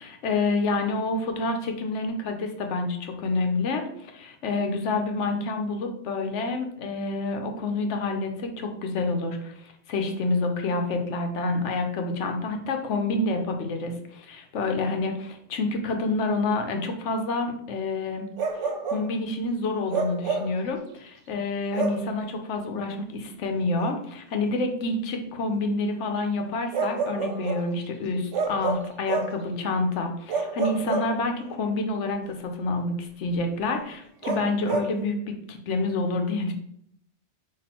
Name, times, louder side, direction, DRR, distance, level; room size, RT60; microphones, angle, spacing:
voice 1, 0.0-18.3 18.9-36.5, left 3 dB, 80° left, 4 dB, 1.0 m, -28 dB
Bark, 18.4-19.1 19.9-20.6 21.7-22.1 23.8-23.9 26.7-27.7 28.3-29.4 30.3-31.6 34.2-35.0, right 4 dB, 85° right, 1.1 m, -29 dB
4.2 x 2.7 x 4.2 m, 0.69 s
omnidirectional pair, 1.2 m